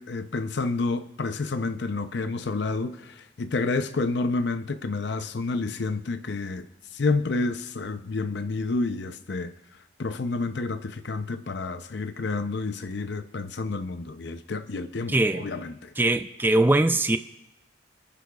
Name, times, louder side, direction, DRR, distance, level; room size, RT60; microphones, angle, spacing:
voice 1, 0.0-6.6 6.9-9.5 10.0-15.9, left 3 dB, 70° left, 0.6 m, -29 dB
voice 2, 15.1-15.5 16.0-17.2, right 2 dB, 10° right, 0.3 m, -21 dB
28.0 x 10.5 x 2.4 m
head